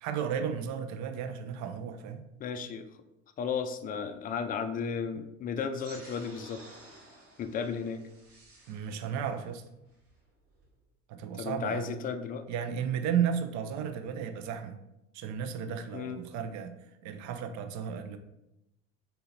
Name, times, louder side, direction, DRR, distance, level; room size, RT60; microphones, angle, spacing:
voice 1, 0.0-2.2 8.7-9.6 11.1-12.0 12.5-14.8 15.1-16.7 17.0-18.2, right 8 dB, 50° right, 8 dB, 0.6 m, -33 dB
voice 2, 2.4-2.9 3.4-6.6 7.4-8.0 11.4-12.4 15.9-16.2, left 6 dB, 25° left, 8 dB, 0.4 m, -34 dB
sound 1, 5.7-10.7, right 2 dB, 80° right, 1.1 m, -54 dB
3.7 x 2.8 x 4.2 m, 0.88 s
hypercardioid pair, 65°, 38 cm